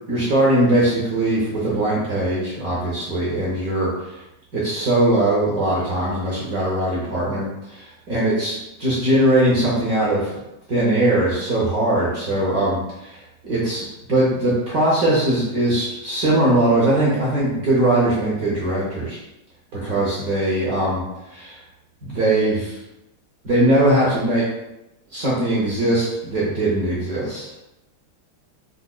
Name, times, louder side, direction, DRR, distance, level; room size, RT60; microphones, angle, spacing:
voice 1, 0.1-4.2 4.5-10.3 10.7-19.2 19.7-21.0 21.3-21.6 22.0-22.8 23.4-24.5 25.1-27.5, right 1 dB, 70° right, -7 dB, 0.8 m, -20 dB
4.7 x 2.1 x 2.3 m, 0.94 s
omnidirectional pair, 2.4 m